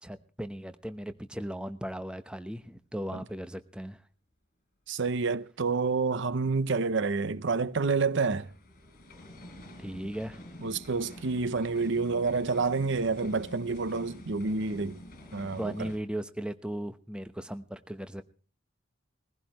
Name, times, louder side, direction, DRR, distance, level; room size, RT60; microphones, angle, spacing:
voice 1, 0.0-4.0 9.8-10.4 15.6-18.2, right 1 dB, 5° right, 0.9 m, -37 dB
voice 2, 4.9-8.5 10.6-15.0 15.3-15.9, right 4 dB, 60° right, 0.7 m, -28 dB
sound 1, 6.7-16.0, left 1 dB, 45° left, 4.7 m, -48 dB
21.0 x 15.5 x 3.0 m
head